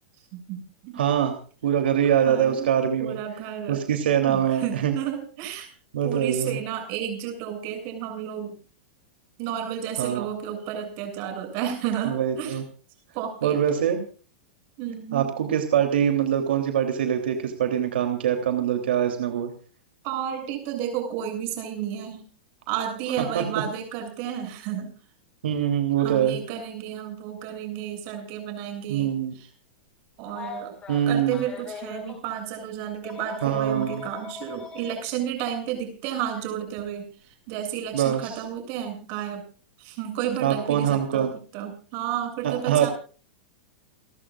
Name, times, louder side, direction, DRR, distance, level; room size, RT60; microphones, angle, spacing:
voice 1, 0.3-1.0 2.3-2.7 3.0-3.8 4.2-5.7 6.0-8.5 9.4-12.6 13.1-13.6 14.8-15.3 20.0-22.2 22.7-24.9 26.0-29.5 30.2-30.7 31.1-39.5 39.8-41.3 41.5-42.9, right 9 dB, 40° right, 5 dB, 7.5 m, -32 dB
voice 2, 1.0-1.3 1.6-3.2 3.7-4.9 5.9-6.6 10.0-10.3 12.1-12.6 13.4-14.0 15.1-19.5 23.3-23.4 25.4-26.4 28.9-29.3 30.9-31.4 33.4-34.0 37.9-38.4 40.4-41.3 42.4-42.9, right 9 dB, 85° right, 5 dB, 3.2 m, -23 dB
Telephone, 30.3-32.2 33.0-34.9 36.3-36.4 37.9-38.1, left 4 dB, 20° left, 6.5 m, -40 dB
29.5 x 12.5 x 2.5 m, 0.40 s
supercardioid pair, 155°, 6 cm